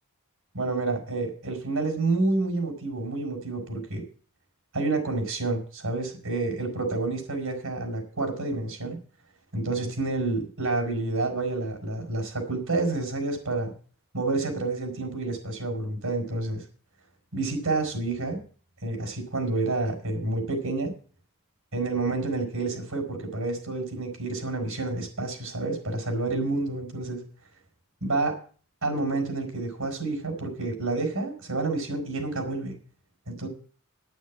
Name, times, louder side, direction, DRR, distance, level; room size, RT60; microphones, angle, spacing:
voice 1, 0.5-4.0 4.7-9.0 9.5-13.7 14.1-16.6 17.3-18.4 18.8-20.9 21.7-27.2 28.0-28.4 28.8-32.8 33.3-33.5, right 3 dB, 75° right, 4 dB, 5.6 m, -29 dB
9.4 x 9.3 x 8.7 m, 0.41 s
head